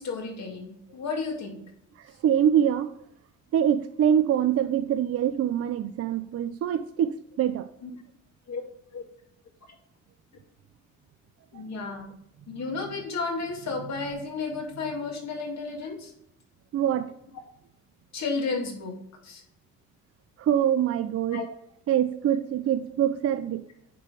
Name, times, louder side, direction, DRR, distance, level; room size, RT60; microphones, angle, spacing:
voice 1, 0.0-1.6 7.8-7.9 8.5-8.6 8.9-9.0 11.5-12.2 12.5-16.1 18.1-18.9 19.2-19.4 21.3-21.5, left 4 dB, 60° left, 2.2 m, -32 dB
voice 2, 2.0-2.9 3.5-7.7 16.7-17.1 20.4-21.5 21.9-23.6, right 9 dB, 50° right, 0.5 m, -24 dB
9.3 x 4.0 x 4.8 m
cardioid pair, 90°, 30 cm